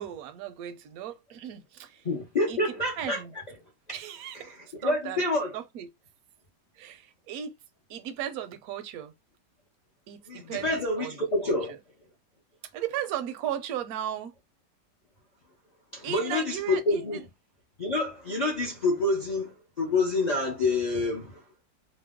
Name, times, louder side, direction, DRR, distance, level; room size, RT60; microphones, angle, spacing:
voice 1, 0.0-2.1 2.5-3.3 3.9-4.6 4.8-5.2 5.5-5.9 6.7-7.6 7.9-9.1 10.1-11.2 11.4-11.8 12.7-14.3 16.0-17.2, right 10 dB, 70° right, 0.9 m, -36 dB
voice 2, 2.0-3.2 4.3-4.6 4.8-5.5 10.3-11.8 15.9-17.2 17.8-21.4, left 2 dB, 65° left, 0.4 m, -27 dB
2.9 x 2.0 x 3.5 m
omnidirectional pair, 1.9 m